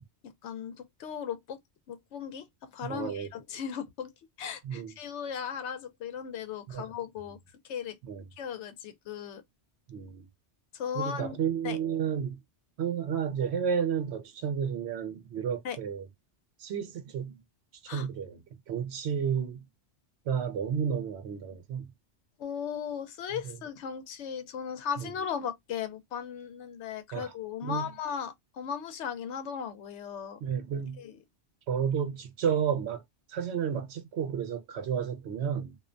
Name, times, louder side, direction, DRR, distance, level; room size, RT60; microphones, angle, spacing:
voice 1, 0.2-1.6 1.9-4.1 4.4-7.4 7.6-8.0 8.4-9.4 10.7-11.4 11.6-11.8 15.6-15.8 17.9-18.1 22.4-30.4 31.0-31.2, left 8 dB, 80° left, 0.9 m, -37 dB
voice 2, 2.8-3.3 4.6-4.9 6.7-6.9 8.1-8.2 9.9-10.2 10.9-12.4 12.8-16.1 16.6-17.4 17.8-19.6 20.3-21.9 23.4-23.6 25.0-25.1 27.1-27.3 27.6-27.9 30.4-31.0 31.7-33.0 33.3-35.8, right 7 dB, 70° right, 0.9 m, -31 dB
2.4 x 2.1 x 2.4 m
omnidirectional pair, 1.2 m